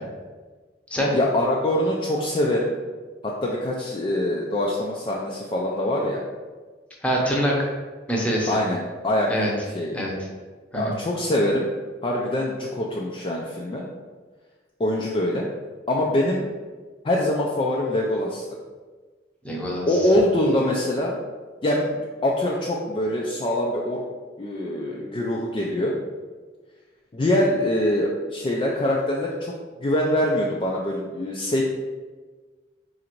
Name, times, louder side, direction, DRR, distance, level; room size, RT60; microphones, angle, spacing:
voice 1, 1.1-2.7 3.2-6.2 8.5-9.5 9.7-10.0 10.7-11.7 12.0-13.8 14.8-15.5 15.9-16.5 17.0-18.4 19.9-21.1 21.6-24.0 24.4-25.9 27.1-29.5 29.8-31.6, left 1 dB, 30° left, -3 dB, 0.4 m, -24 dB
voice 2, 7.0-7.7 8.1-8.6 9.3-9.5 9.9-10.1 10.7-10.9 19.4-20.0, equal, 5° left, -3 dB, 0.7 m, -24 dB
3.9 x 2.5 x 4.4 m, 1.4 s
head